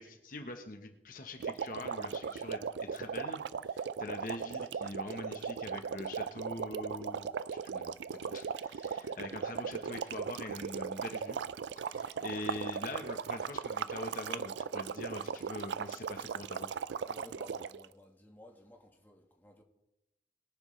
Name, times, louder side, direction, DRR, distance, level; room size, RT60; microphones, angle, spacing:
voice 1, 0.0-11.4 11.8-16.7, left 2 dB, 50° left, 5 dB, 1.1 m, -44 dB
sound 1, 1.4-17.9, right 6 dB, 85° right, 0.4 m, -38 dB
voice 2, 17.1-19.6, left 1 dB, 10° left, 1 dB, 1.5 m, -56 dB
22.0 x 9.6 x 3.3 m, 0.93 s
head